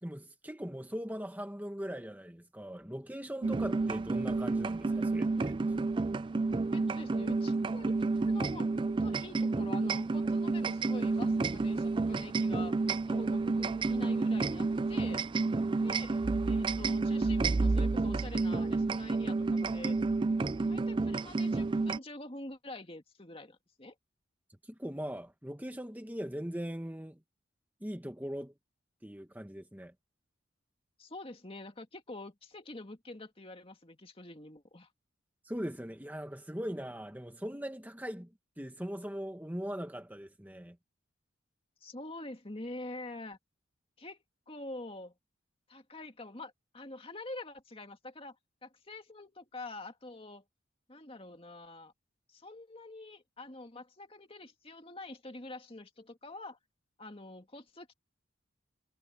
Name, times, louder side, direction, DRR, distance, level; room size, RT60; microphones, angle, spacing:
voice 1, 0.0-5.6 24.6-27.2 27.8-28.5 29.0-29.9 35.4-40.8, equal, 10° right, 1.4 m, -40 dB
sound 1, 3.4-22.0, right 3 dB, 25° right, 0.3 m, -30 dB
voice 2, 6.7-8.0 8.3-12.8 13.1-15.2 15.8-20.0 20.7-23.9 31.0-34.9 41.8-43.4 44.0-44.2 44.5-45.1 45.7-48.4 48.6-50.4 50.9-51.9 52.3-56.6 57.0-57.9, left 2 dB, 30° left, 2.2 m, -46 dB
head